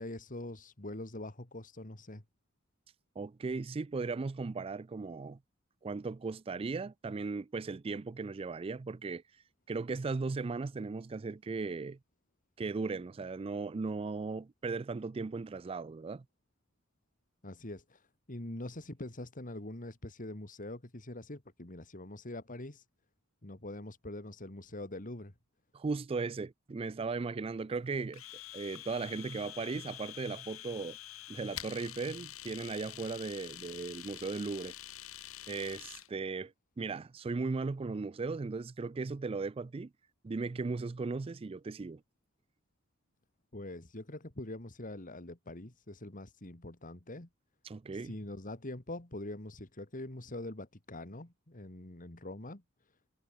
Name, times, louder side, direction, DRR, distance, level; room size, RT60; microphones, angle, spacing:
voice 1, 0.0-2.2 17.4-22.8 23.4-25.3 43.5-47.3 47.9-52.6, left 1 dB, 40° left, 2.4 m, -44 dB
voice 2, 3.2-5.4 5.8-9.2 9.7-12.0 12.6-16.2 25.7-28.2 28.5-31.0 31.3-34.7 35.5-39.9 40.2-42.0 47.6-48.1, right 4 dB, 25° right, 0.4 m, -37 dB
Domestic sounds home sounds, 28.1-36.1, left 13 dB, 85° left, 1.9 m, -47 dB
head